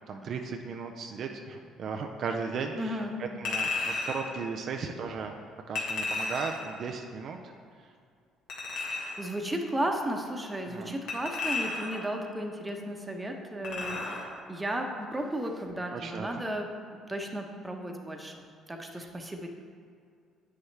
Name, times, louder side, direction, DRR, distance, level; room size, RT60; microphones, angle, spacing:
voice 1, 0.1-5.3 5.7-7.5 10.7-10.9 15.9-16.3 19.0-19.1, right 5 dB, 60° right, 3 dB, 0.5 m, -36 dB
voice 2, 2.8-3.2 9.2-16.7 17.1-19.5, right 1 dB, 15° right, 3 dB, 1.0 m, -34 dB
Chink clink, 3.4-4.2 5.7-6.7 8.5-9.2 11.1-12.1 13.6-14.3 14.6-14.8, left 3 dB, 70° left, 1.6 m, -33 dB
8.4 x 6.4 x 3.4 m, 2.3 s
hypercardioid pair, 60°, 0 cm